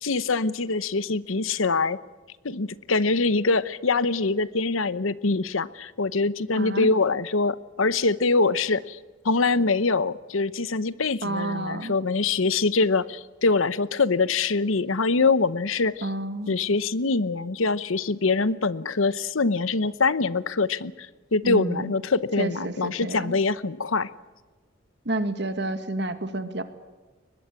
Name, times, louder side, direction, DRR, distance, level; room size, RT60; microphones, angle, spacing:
voice 1, 0.0-2.0 2.4-9.0 9.2-16.1 16.5-24.1, left 3 dB, 85° left, 17 dB, 0.9 m, -24 dB
voice 2, 6.5-6.9 11.2-11.9 16.0-16.5 21.4-21.8 22.4-23.4 25.1-26.6, right 2 dB, 55° right, 10 dB, 2.0 m, -29 dB
23.5 x 20.5 x 8.3 m, 1.3 s
head